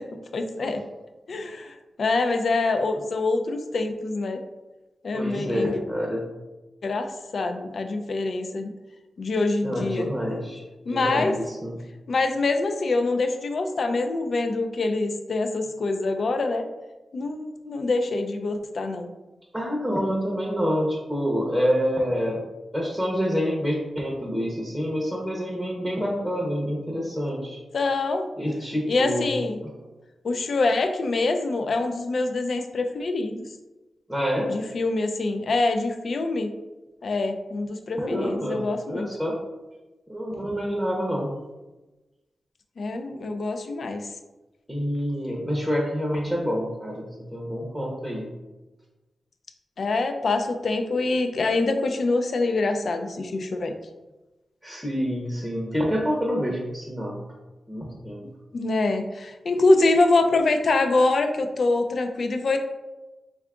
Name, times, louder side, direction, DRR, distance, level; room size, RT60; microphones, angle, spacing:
voice 1, 0.3-0.8 1.3-4.4 5.0-5.8 6.8-8.7 9.2-10.1 10.9-11.3 12.1-16.6 17.1-19.1 27.7-28.3 28.9-29.6 30.2-33.4 34.5-36.5 37.0-39.1 42.8-44.0 49.8-53.7 58.5-62.6, left 3 dB, 60° left, 6 dB, 0.4 m, -25 dB
voice 2, 5.1-6.2 9.6-11.8 19.5-22.4 22.7-27.6 28.4-29.3 34.1-34.5 38.0-38.6 38.9-39.3 40.1-41.3 44.7-48.3 54.6-57.2 57.7-58.2, equal, ahead, -3 dB, 0.7 m, -27 dB
3.6 x 2.3 x 3.5 m, 1.1 s
wide cardioid pair, 95°, 0 cm